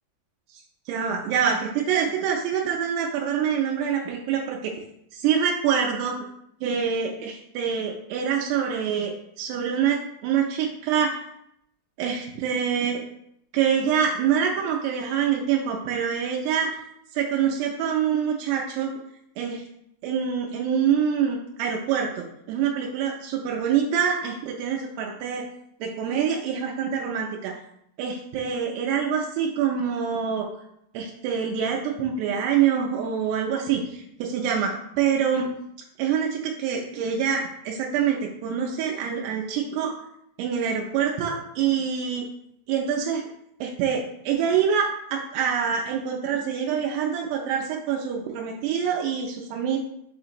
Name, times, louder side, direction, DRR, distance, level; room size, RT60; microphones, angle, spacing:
voice 1, 0.9-4.7 5.1-6.2 6.6-11.2 12.0-13.0 13.5-16.8 17.1-19.0 19.4-19.6 20.0-25.5 25.8-27.6 28.0-30.5 30.9-35.5 36.0-40.0 40.4-42.3 42.7-43.2 43.6-49.8, right 7 dB, 90° right, -1 dB, 2.6 m, -25 dB
6.2 x 2.9 x 2.5 m, 0.75 s
omnidirectional pair, 4.6 m